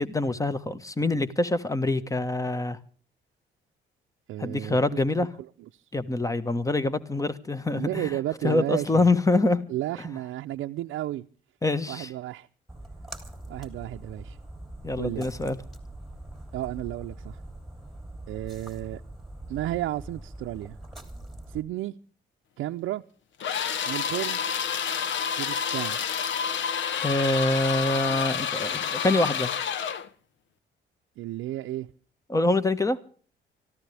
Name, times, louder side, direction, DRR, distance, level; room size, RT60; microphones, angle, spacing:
voice 1, 0.0-2.8 4.4-5.3 5.9-8.1 8.4-9.6 11.6-12.1 14.8-15.6 27.0-29.5 32.3-33.0, left 2 dB, 15° left, 1.4 m, -25 dB
voice 2, 4.3-5.0 5.7-5.8 7.7-9.1 9.7-11.3 11.9-12.5 13.5-14.4 15.0-15.3 16.5-17.4 18.3-19.0 19.5-20.8 21.5-21.9 22.6-23.0 23.9-24.4 25.4-26.0 31.2-31.9, right 14 dB, 80° right, 0.7 m, -32 dB
Splash splatter, 12.7-21.6, right 1 dB, ahead, 3.2 m, -42 dB
sound 1, 23.4-30.1, left 7 dB, 70° left, 1.1 m, -29 dB
24.5 x 14.5 x 3.4 m
cardioid pair, 90°, 20 cm